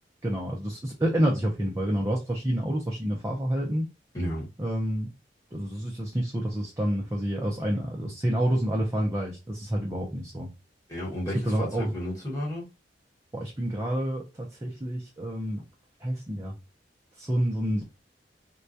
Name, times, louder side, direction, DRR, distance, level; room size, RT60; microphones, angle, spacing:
voice 1, 0.2-3.8 4.6-5.1 5.5-10.5 11.4-11.9 13.3-15.6 16.0-16.5 17.2-17.8, equal, 15° right, 0.4 m, -28 dB
voice 2, 4.1-4.5 10.9-12.7, equal, 20° left, 1.2 m, -32 dB
2.2 x 2.2 x 2.6 m
head